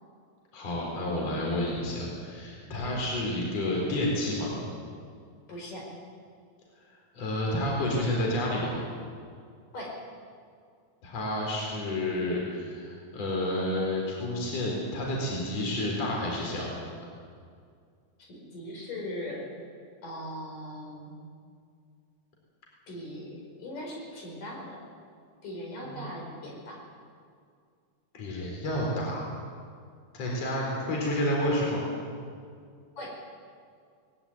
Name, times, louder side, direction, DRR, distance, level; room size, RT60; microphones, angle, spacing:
voice 1, 0.5-4.5 7.1-8.7 11.0-16.7 25.8-26.1 28.1-29.2 30.1-31.8, left 1 dB, 45° left, -2 dB, 5.3 m, -30 dB
voice 2, 5.5-5.9 9.7-9.9 18.3-19.4 20.0-21.1 22.9-24.8 25.4-26.8 30.2-30.3 33.0-33.1, left 1 dB, 60° left, -1 dB, 6.4 m, -39 dB
20.5 x 17.0 x 9.5 m, 2.2 s
omnidirectional pair, 4.2 m